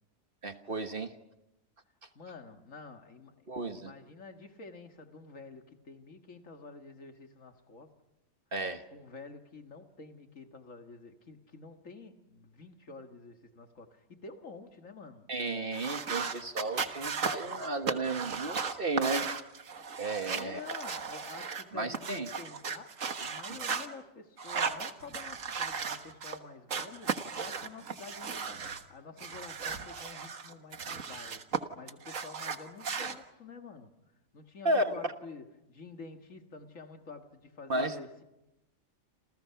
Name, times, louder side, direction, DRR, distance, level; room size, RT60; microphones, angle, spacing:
voice 1, 0.4-1.1 3.5-3.9 8.5-8.8 15.3-19.2 20.0-20.6 21.7-22.3 23.5-23.6 34.6-35.1 37.7-37.9, right 2 dB, 40° right, 1.5 m, -33 dB
voice 2, 2.2-7.9 8.9-15.3 20.2-31.5 31.7-33.9 34.3-38.2, left 4 dB, 65° left, 2.2 m, -49 dB
sound 1, 15.7-21.6 21.9-23.9 24.4-26.4 26.7-28.8 29.2-31.6 31.9-33.2, right 5 dB, 70° right, 1.8 m, -36 dB
29.0 x 28.5 x 5.8 m
omnidirectional pair, 1.4 m